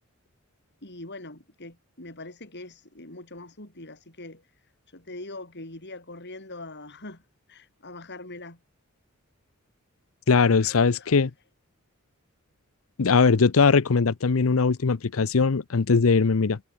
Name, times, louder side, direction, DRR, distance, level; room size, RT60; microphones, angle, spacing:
voice 1, 0.8-4.4 4.9-7.2 7.5-8.6 10.5-11.2, left 2 dB, 55° left, 6.7 m, -42 dB
voice 2, 10.3-11.3 13.0-16.6, left 4 dB, 70° left, 0.7 m, -20 dB
head